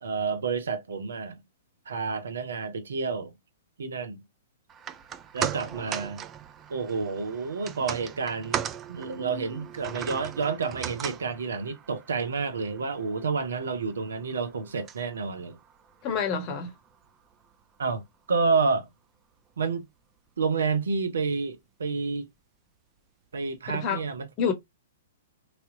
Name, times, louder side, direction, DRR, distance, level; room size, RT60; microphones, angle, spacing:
voice 1, 0.0-1.4 1.9-3.3 3.8-4.2 5.3-6.2 6.7-8.6 8.9-15.6 17.8-18.0 18.3-18.9 19.6-19.9 20.4-22.3 23.3-24.3, right 4 dB, 70° right, 0.7 m, -29 dB
sound 1, 4.7-17.1 17.4-17.5, right 8 dB, 25° right, 0.4 m, -38 dB
voice 2, 16.0-16.7 23.7-24.0 24.4-24.5, left 6 dB, 35° left, 0.9 m, -27 dB
3.3 x 2.8 x 2.5 m
figure-of-eight pair, 110°, 0 cm